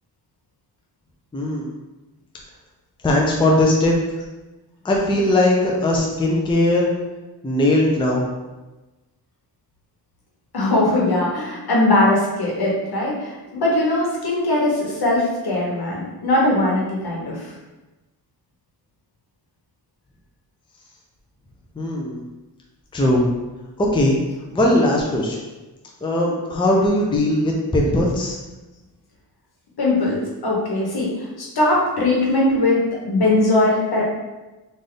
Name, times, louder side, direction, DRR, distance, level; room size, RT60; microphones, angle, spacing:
voice 1, 1.3-1.7 3.0-3.9 4.8-6.9 7.4-8.3 21.8-22.2 22.9-23.3 23.8-24.2 24.5-25.4 26.0-28.4, left 1 dB, 10° left, -2 dB, 0.5 m, -19 dB
voice 2, 10.5-17.5 29.8-34.0, left 2 dB, 65° left, -3 dB, 1.3 m, -20 dB
3.4 x 2.6 x 3.8 m, 1.1 s
wide cardioid pair, 95°, 41 cm